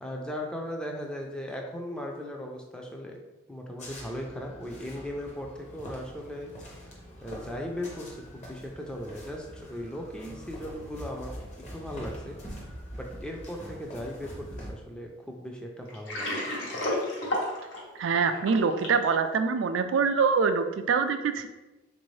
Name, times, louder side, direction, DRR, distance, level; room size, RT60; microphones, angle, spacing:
voice 1, 0.0-3.2 3.5-6.5 7.2-11.3 11.7-12.6 12.9-16.5, left 1 dB, 5° left, 1 dB, 0.4 m, -38 dB
sound 1, 3.8-14.7, equal, 35° left, 0.7 m, -44 dB
Water, 15.9-19.0, left 1 dB, 65° left, 0.9 m, -31 dB
voice 2, 18.0-21.5, right 5 dB, 80° right, 9 dB, 0.3 m, -24 dB
3.7 x 2.6 x 3.1 m, 1.1 s
head